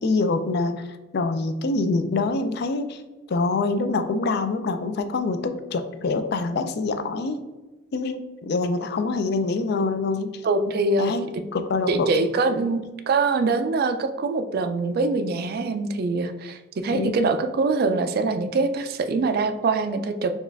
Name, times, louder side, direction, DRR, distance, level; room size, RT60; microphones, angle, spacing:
voice 1, 0.0-0.9 1.1-3.0 3.3-7.4 7.9-10.4 11.0-11.3 11.5-12.1 16.9-17.2, left 3 dB, 60° left, 8 dB, 0.4 m, -25 dB
voice 2, 10.4-11.1 11.9-20.3, right 3 dB, 55° right, 9 dB, 0.3 m, -24 dB
4.4 x 2.4 x 3.4 m, 1.1 s
head